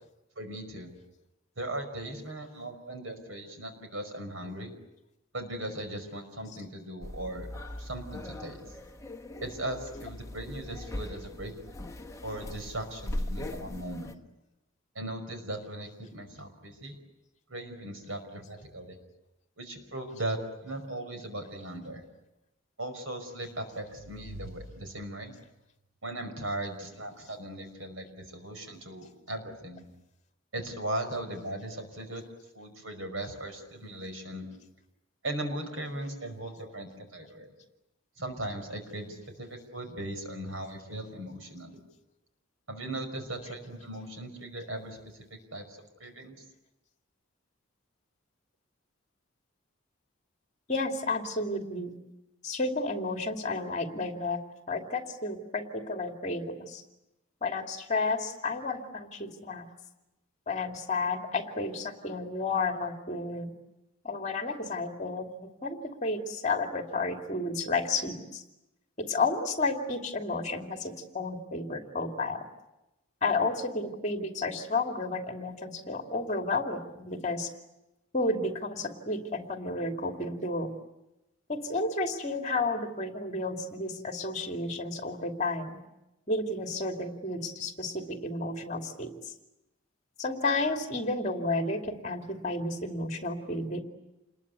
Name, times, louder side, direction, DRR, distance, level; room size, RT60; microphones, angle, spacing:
voice 1, 0.4-0.9 1.6-4.7 5.3-7.5 7.8-8.6 9.4-11.5 12.2-14.1 15.0-17.0 17.5-19.0 19.6-22.0 22.8-25.3 26.0-29.8 30.5-32.2 32.5-34.5 35.2-37.5 38.2-41.8 42.7-45.2 45.5-46.4, right 1 dB, 75° right, 6 dB, 5.4 m, -38 dB
sound 1, 7.0-14.1, left 1 dB, 15° left, 1.4 m, -40 dB
sound 2, 23.2-25.6, right 1 dB, 90° right, 3.1 m, -48 dB
voice 2, 50.7-51.9 52.4-54.4 54.7-56.8 57.4-59.6 60.5-63.5 64.0-65.3 65.6-68.4 69.0-72.4 73.2-77.5 78.1-80.7 81.5-85.8 86.3-89.1 90.2-93.8, left 3 dB, 35° left, 4 dB, 2.6 m, -31 dB
28.5 x 21.5 x 9.5 m, 0.93 s
head